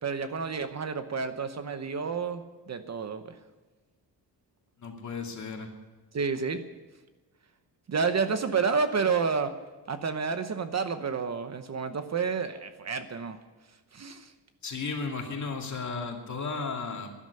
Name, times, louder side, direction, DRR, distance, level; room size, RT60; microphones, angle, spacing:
voice 1, 0.0-3.4 6.1-6.6 7.9-9.5 9.9-13.4 13.9-14.3, right 5 dB, 40° right, 9 dB, 0.9 m, -30 dB
voice 2, 4.8-5.7 14.6-17.1, left 4 dB, 45° left, 2 dB, 2.5 m, -34 dB
13.0 x 11.0 x 9.6 m, 1.2 s
wide cardioid pair, 170°, 40 cm